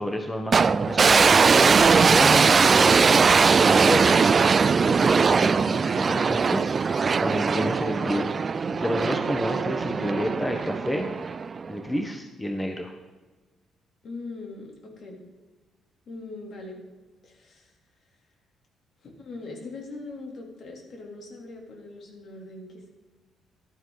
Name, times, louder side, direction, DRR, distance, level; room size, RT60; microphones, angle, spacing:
voice 1, 0.0-3.2 3.6-4.2 4.6-8.2 8.7-11.1 11.7-12.9, equal, 10° left, 3 dB, 1.4 m, -30 dB
sound 1, 0.5-11.7, right 5 dB, 40° right, 0.4 m, -20 dB
voice 2, 5.4-5.8 7.8-8.2 14.0-15.2 16.1-16.8 17.2-17.7 19.0-22.9, left 2 dB, 60° left, 0 dB, 3.5 m, -41 dB
12.5 x 12.5 x 4.1 m, 1.2 s
cardioid pair, 90°, 0 cm